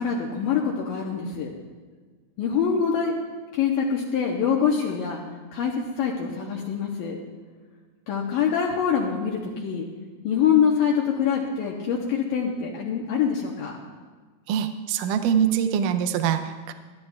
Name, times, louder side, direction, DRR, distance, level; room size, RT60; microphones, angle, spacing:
voice 1, 0.0-1.5 2.4-3.2 3.5-5.2 5.5-7.2 8.1-9.9 10.2-13.7, left 7 dB, 75° left, -1 dB, 2.4 m, -24 dB
voice 2, 14.5-16.7, right 8 dB, 90° right, 8 dB, 1.8 m, -24 dB
20.5 x 13.5 x 2.4 m, 1.4 s
omnidirectional pair, 4.6 m